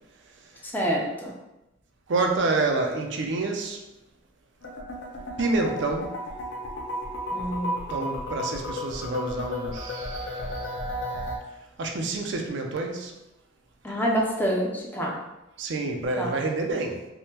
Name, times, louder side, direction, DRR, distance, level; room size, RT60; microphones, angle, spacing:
voice 1, 0.7-1.3 7.3-7.8 13.8-15.2 16.2-16.4, equal, 10° left, -2 dB, 0.4 m, -27 dB
voice 2, 2.1-3.8 5.4-6.2 7.9-10.7 11.8-13.1 15.6-17.1, right 3 dB, 65° right, 2 dB, 0.4 m, -28 dB
sound 1, 4.6-11.4, left 1 dB, 65° left, 0.5 m, -33 dB
3.4 x 2.1 x 2.8 m, 0.95 s
head